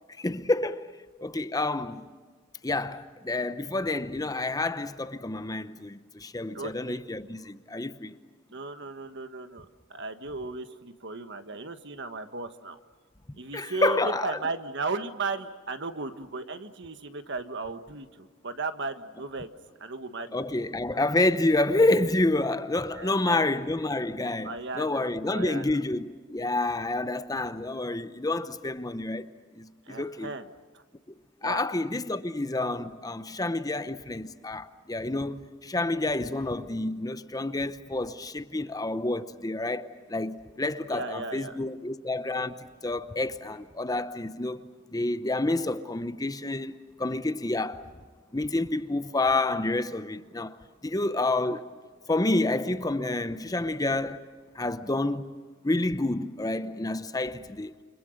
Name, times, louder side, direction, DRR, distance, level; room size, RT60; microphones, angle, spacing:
voice 1, 0.2-2.1 2.6-8.2 13.5-14.4 20.3-29.3 29.5-30.3 31.1-31.2 31.4-44.6 44.9-46.7 47.0-47.9 48.3-50.6 50.8-51.7 52.1-54.3 54.5-55.3 55.6-57.7, left 2 dB, 20° left, 0.8 m, -29 dB
voice 2, 6.5-7.0 8.5-9.6 9.9-12.8 13.4-14.0 14.2-19.5 19.8-20.4 23.0-23.5 24.4-25.7 29.9-30.5 30.7-30.8 31.4-31.7 40.9-41.6, right 3 dB, 60° right, 1.5 m, -36 dB
29.0 x 26.0 x 6.5 m
head